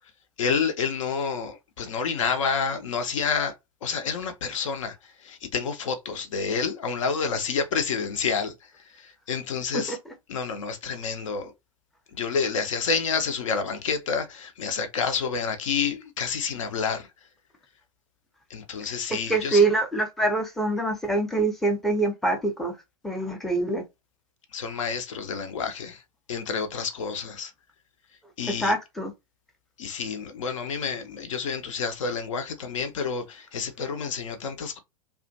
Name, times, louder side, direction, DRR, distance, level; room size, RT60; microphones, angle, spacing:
voice 1, 0.4-3.5 3.8-10.0 10.3-11.5 12.1-17.1 18.5-19.7 24.5-26.0 26.3-27.5 28.4-28.7 29.8-34.8, left 5 dB, 60° left, 0.5 m, -29 dB
voice 2, 19.1-22.7 23.0-23.8 28.4-29.1, right 2 dB, ahead, 0.5 m, -25 dB
2.4 x 2.2 x 2.6 m
figure-of-eight pair, 90°, 19 cm